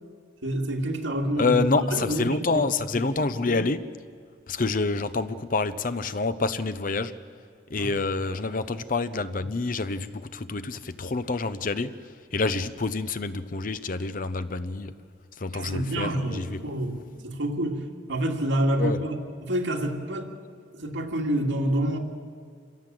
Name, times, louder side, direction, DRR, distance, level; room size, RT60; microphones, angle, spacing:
voice 1, 0.4-2.7 7.8-7.9 15.5-20.3 20.7-22.0, right 1 dB, 80° right, 1 dB, 2.4 m, -28 dB
voice 2, 1.4-3.9 4.5-7.1 7.7-11.9 12.3-14.9 15.4-16.6 18.8-19.0, left 3 dB, 45° left, 12 dB, 0.7 m, -27 dB
27.0 x 16.5 x 7.7 m, 2.1 s
head